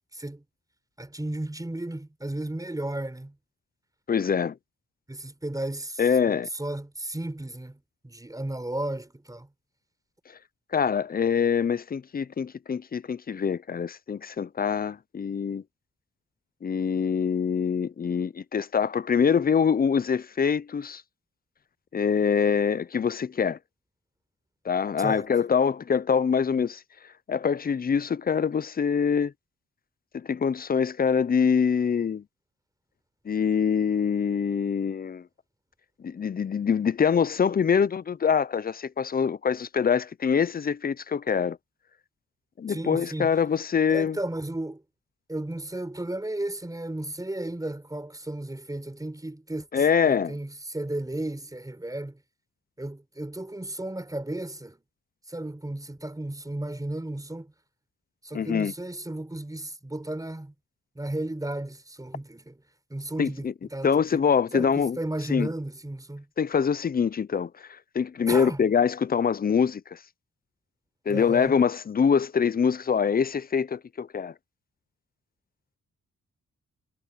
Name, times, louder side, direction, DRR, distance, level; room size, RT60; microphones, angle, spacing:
voice 1, 0.1-0.4 1.0-3.3 5.1-6.0 6.5-9.5 25.0-25.3 42.7-43.3 43.9-44.8 45.3-52.2 52.8-54.8 55.3-57.5 58.2-60.5 61.0-62.6 62.9-63.5 63.7-64.2 64.5-66.3 68.3-68.6 71.1-71.6, right 1 dB, 10° right, 5.5 m, -34 dB
voice 2, 4.1-4.6 6.0-6.5 10.7-15.6 16.6-21.0 21.9-23.6 24.7-26.8 27.3-29.3 30.1-32.2 33.3-35.3 36.0-41.6 42.6-44.2 49.7-50.4 58.3-58.7 63.2-63.5 63.8-65.0 65.3-65.5 66.4-70.0 71.1-74.3, left 6 dB, 30° left, 0.4 m, -24 dB
wide cardioid pair, 175°, 32 cm